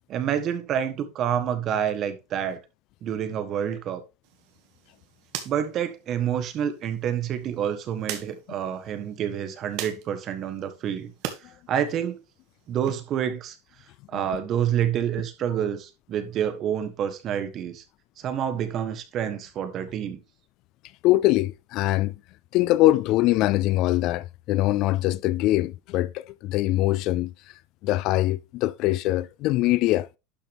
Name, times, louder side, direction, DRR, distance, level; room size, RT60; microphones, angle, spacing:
voice 1, 0.1-2.6 3.0-4.0 5.4-11.1 11.7-12.2 12.7-13.5 14.1-17.8 18.2-20.2, right 9 dB, 35° right, 1.3 m, -28 dB
sound 1, 4.2-11.4 11.8-12.9, right 11 dB, 55° right, 1.9 m, -41 dB
voice 2, 21.0-22.1 22.5-27.3 27.8-30.1, left 16 dB, 45° left, 0.4 m, -23 dB
11.5 x 5.7 x 3.5 m
supercardioid pair, 150°, 0 cm